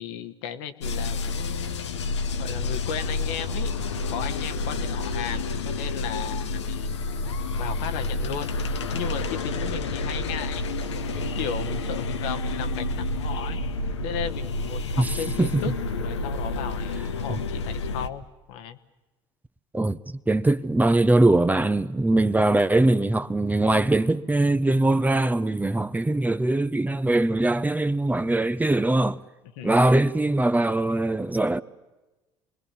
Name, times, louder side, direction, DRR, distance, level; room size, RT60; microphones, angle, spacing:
voice 1, 0.0-3.7 4.1-7.0 7.5-8.5 8.9-10.6 11.1-13.6 14.0-15.7 16.0-18.8 29.6-29.8, left 8 dB, 70° left, 1.4 m, -35 dB
sound 1, 0.8-18.1, left 3 dB, 85° left, 1.0 m, -29 dB
voice 2, 15.0-15.7 17.3-17.4 19.7-29.2 29.6-31.6, right 2 dB, 10° right, 0.8 m, -22 dB
27.0 x 21.0 x 7.1 m
hypercardioid pair, 65°, 15 cm